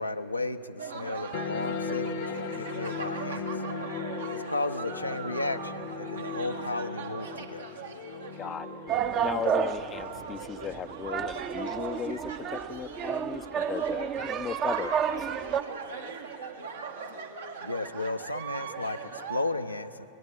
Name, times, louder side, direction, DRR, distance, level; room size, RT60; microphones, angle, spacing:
voice 1, 0.0-3.6 4.3-7.7 17.6-20.1, left 2 dB, 90° left, 7 dB, 0.7 m, -34 dB
sound 1, 0.8-19.5, right 5 dB, 75° right, 1.7 m, -40 dB
sound 2, 1.3-12.3, left 5 dB, 50° left, 0.8 m, -38 dB
voice 2, 8.4-8.8 9.2-12.2 12.5-15.3, left 7 dB, 25° left, 14 dB, 0.5 m, -36 dB
sound 3, 8.9-15.6, right 8 dB, 35° right, 0.8 m, -31 dB
23.0 x 19.5 x 6.9 m, 3.0 s
figure-of-eight pair, 90°, 0 cm